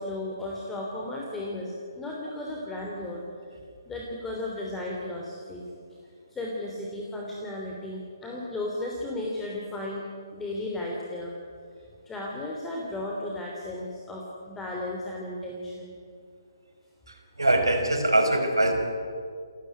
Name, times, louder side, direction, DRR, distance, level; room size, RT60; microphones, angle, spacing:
voice 1, 0.0-3.2 3.9-5.6 6.3-10.1 10.3-11.3 12.1-16.0, left 1 dB, 10° left, -2 dB, 3.2 m, -34 dB
voice 2, 17.4-18.7, right 1 dB, 90° right, 5 dB, 5.4 m, -22 dB
29.0 x 15.0 x 9.9 m, 2.3 s
figure-of-eight pair, 140°, 2 cm